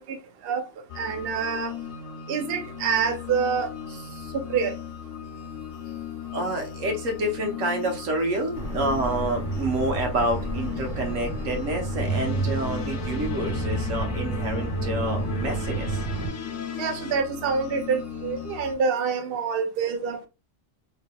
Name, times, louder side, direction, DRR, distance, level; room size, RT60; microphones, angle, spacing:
sound 1, 0.9-18.7, left 8 dB, 65° left, 0.9 m, -38 dB
voice 1, 1.0-1.7 2.3-3.7 4.5-4.7 16.8-20.3, right 6 dB, 60° right, 0.7 m, -26 dB
voice 2, 6.3-16.0, right 1 dB, 80° right, 1.3 m, -28 dB
sound 2, 8.5-16.3, right 2 dB, 20° left, 1.1 m, -30 dB
sound 3, 12.1-17.1, left 4 dB, 85° left, 1.0 m, -37 dB
3.5 x 2.8 x 2.2 m
omnidirectional pair, 1.3 m